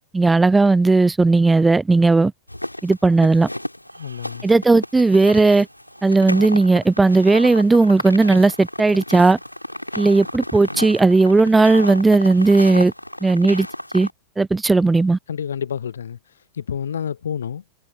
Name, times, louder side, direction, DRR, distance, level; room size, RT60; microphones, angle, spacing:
voice 1, 0.1-2.3 2.8-3.5 4.4-5.7 6.0-9.4 10.0-12.9 13.2-13.7 13.9-14.1 14.4-15.2, right 3 dB, 10° right, 0.5 m, -15 dB
sound 1, 2.5-14.1, left 1 dB, 85° left, 2.9 m, -32 dB
sound 2, 3.8-12.7, right 3 dB, 80° right, 5.6 m, -53 dB
voice 2, 4.0-4.5 15.3-16.2 16.5-17.6, left 8 dB, 65° left, 1.1 m, -28 dB
figure-of-eight pair, 90°, 0 cm